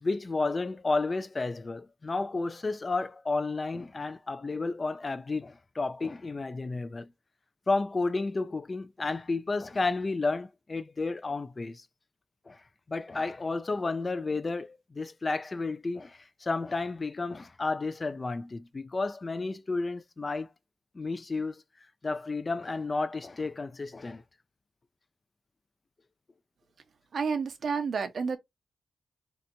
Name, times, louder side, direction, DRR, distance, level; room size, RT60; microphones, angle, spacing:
voice 1, 0.0-7.1 7.7-11.8 12.5-12.6 12.9-20.5 20.9-21.6 22.0-24.2, left 3 dB, 35° left, 0.4 m, -32 dB
voice 2, 27.1-28.4, right 5 dB, 70° right, 0.7 m, -30 dB
3.2 x 2.9 x 2.6 m
cardioid pair, 75°, 0 cm